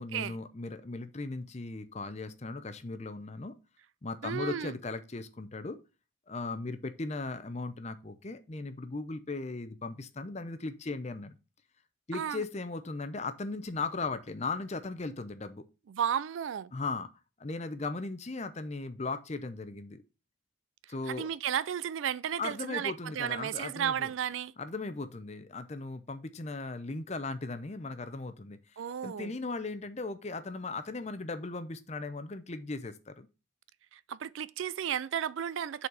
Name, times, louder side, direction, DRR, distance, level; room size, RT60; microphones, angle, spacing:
voice 1, 0.0-3.6 4.0-5.8 6.3-11.4 12.1-15.7 16.7-17.1 17.4-20.0 20.9-21.3 22.4-24.1 24.6-28.6 29.0-33.3, left 3 dB, 35° left, 0.6 m, -37 dB
voice 2, 4.2-4.7 12.1-12.4 15.9-16.7 21.1-24.5 28.8-29.3 33.9-35.9, right 9 dB, 70° right, 0.3 m, -33 dB
6.8 x 4.2 x 4.8 m
head